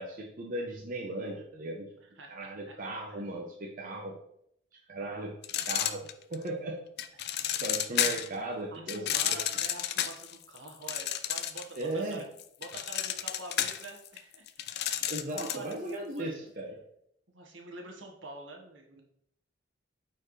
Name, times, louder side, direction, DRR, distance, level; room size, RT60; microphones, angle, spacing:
voice 1, 0.0-1.9 2.3-4.2 4.9-5.4 5.6-6.8 7.6-9.4 11.8-12.2 15.1-16.8, right 1 dB, 45° right, -1 dB, 0.9 m, -37 dB
voice 2, 2.0-2.8 3.1-3.2 7.2-7.3 8.7-12.2 12.6-14.7 15.4-16.5 17.3-19.0, right 2 dB, 70° right, 1 dB, 1.5 m, -47 dB
sound 1, 5.4-6.5 7.0-8.3 8.9-11.8 12.1-15.7, left 11 dB, 55° left, 0.5 m, -31 dB
9.3 x 4.5 x 3.2 m, 0.72 s
head